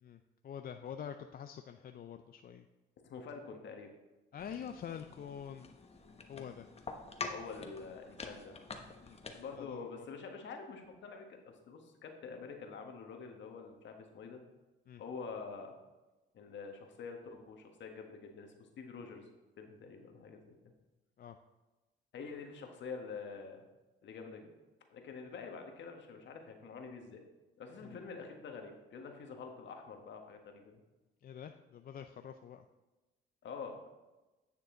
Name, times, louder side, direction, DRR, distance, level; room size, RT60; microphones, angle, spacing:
voice 1, 0.0-2.7 4.3-5.7 6.3-6.7 9.0-9.2 9.6-10.1 14.9-15.0 21.2-21.4 27.8-28.0 31.2-32.7, left 8 dB, 50° left, 7 dB, 0.5 m, -46 dB
voice 2, 3.0-3.9 7.3-8.6 9.3-14.4 15.0-15.7 16.3-19.3 19.6-20.6 22.1-23.6 24.0-24.5 24.9-27.2 27.6-30.8 33.4-33.9, left 5 dB, 65° left, 4 dB, 1.5 m, -46 dB
sound 1, 4.4-9.6, left 4 dB, 30° left, 1.1 m, -47 dB
9.8 x 6.7 x 3.8 m, 1.1 s
cardioid pair, 90°, 20 cm